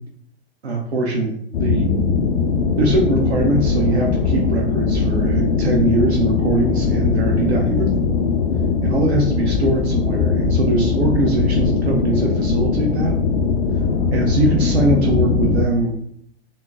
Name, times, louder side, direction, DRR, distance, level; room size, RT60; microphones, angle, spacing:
voice 1, 0.6-1.8 2.8-7.9 8.8-13.2 14.1-16.0, right 2 dB, 75° right, 0 dB, 0.7 m, -21 dB
sound 1, 1.5-15.7, left 5 dB, 65° left, 0.5 m, -20 dB
3.9 x 2.1 x 3.6 m, 0.68 s
figure-of-eight pair, 100°, 32 cm